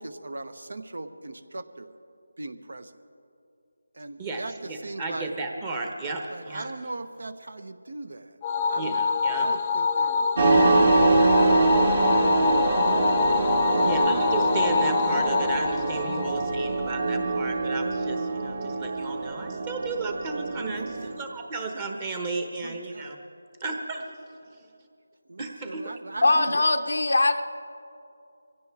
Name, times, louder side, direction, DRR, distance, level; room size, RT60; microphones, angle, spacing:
voice 1, 0.0-1.9 2.4-2.9 4.0-5.3 6.3-9.0 9.3-10.3 11.0-11.9 13.6-14.0 20.7-21.2 22.6-23.2 25.3-26.7, right 2 dB, 70° right, 12 dB, 1.0 m, -39 dB
voice 2, 4.2-6.7 8.8-9.5 13.8-23.2 23.6-24.0 25.4-25.8, right 3 dB, 20° right, 3 dB, 1.0 m, -33 dB
sound 1, 8.4-17.0, left 5 dB, 20° left, 0.7 m, -25 dB
sound 2, 10.4-21.2, right 3 dB, 45° right, 1.6 m, -24 dB
voice 3, 26.2-27.4, left 2 dB, 70° left, 6 dB, 0.7 m, -21 dB
23.5 x 16.0 x 3.5 m, 2.6 s
figure-of-eight pair, 170°, 0 cm